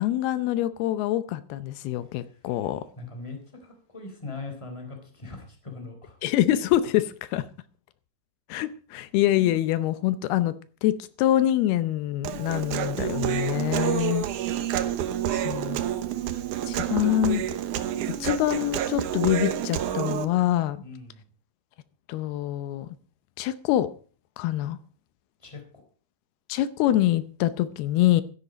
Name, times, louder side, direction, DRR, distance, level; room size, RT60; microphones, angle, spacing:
voice 1, 0.0-2.8 6.2-7.4 8.5-10.5 10.8-14.2 15.3-15.8 16.7-17.4 18.2-20.8 22.1-22.9 23.4-23.9 24.4-24.8 26.5-28.2, left 13 dB, 85° left, 2.7 m, -25 dB
voice 2, 3.0-6.2 20.8-21.2 25.4-25.6, left 3 dB, 10° left, 3.0 m, -40 dB
Human voice, 12.2-20.3, right 10 dB, 70° right, 2.2 m, -28 dB
14.0 x 11.0 x 5.1 m
omnidirectional pair, 4.4 m